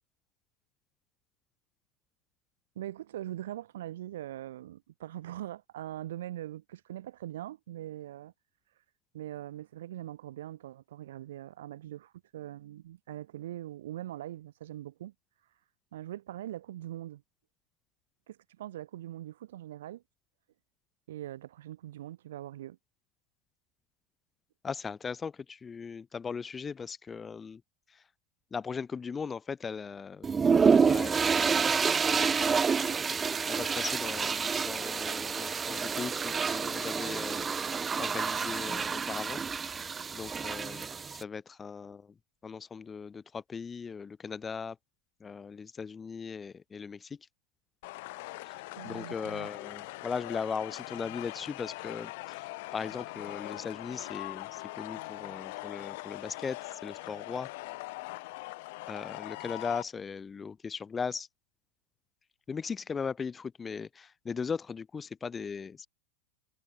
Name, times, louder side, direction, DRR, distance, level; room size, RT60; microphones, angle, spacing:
voice 1, 2.7-8.3 9.1-15.1 15.9-17.2 18.3-20.0 21.1-22.8 48.8-49.5, right 13 dB, 80° right, 3.3 m, -42 dB
voice 2, 24.6-27.6 27.9-28.0 28.5-30.3 30.6-31.7 32.1-33.2 33.5-42.1 42.4-44.8 45.2-47.2 48.4-48.5 48.8-57.5 58.9-61.3 62.5-65.9, left 5 dB, 15° left, 6.1 m, -39 dB
sound 1, 30.2-41.2, right 5 dB, 15° right, 1.1 m, -28 dB
sound 2, 47.8-59.8, left 23 dB, 55° left, 5.4 m, -42 dB
supercardioid pair, 165°, 0 cm